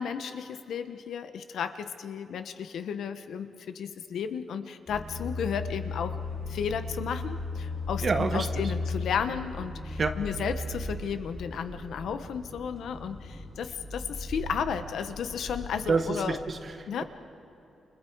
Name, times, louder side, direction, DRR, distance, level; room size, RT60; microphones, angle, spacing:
voice 1, 0.0-6.2 6.5-16.4 16.9-17.0, left 7 dB, 70° left, 10 dB, 1.2 m, -33 dB
sound 1, 4.9-16.0, left 2 dB, 10° left, 3.7 m, -36 dB
voice 2, 8.0-8.6 10.0-10.2 15.9-17.0, right 4 dB, 35° right, 7 dB, 1.3 m, -28 dB
30.0 x 29.5 x 4.8 m, 3.0 s
wide cardioid pair, 165°, 0 cm